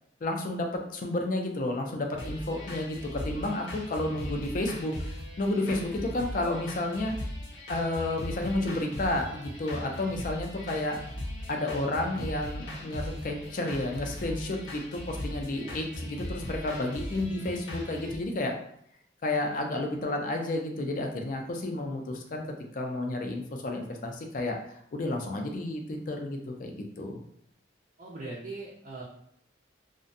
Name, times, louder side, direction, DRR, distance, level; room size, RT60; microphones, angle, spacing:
voice 1, 0.2-7.1 7.7-11.0 11.5-18.5 19.2-22.4 22.7-24.6 24.9-27.2, left 2 dB, 45° left, 2 dB, 0.4 m, -31 dB
sound 1, 2.2-18.2, left 1 dB, 90° left, 0.7 m, -39 dB
voice 2, 28.0-29.0, right 2 dB, 45° right, -5 dB, 0.4 m, -40 dB
2.5 x 2.1 x 2.5 m, 0.70 s
head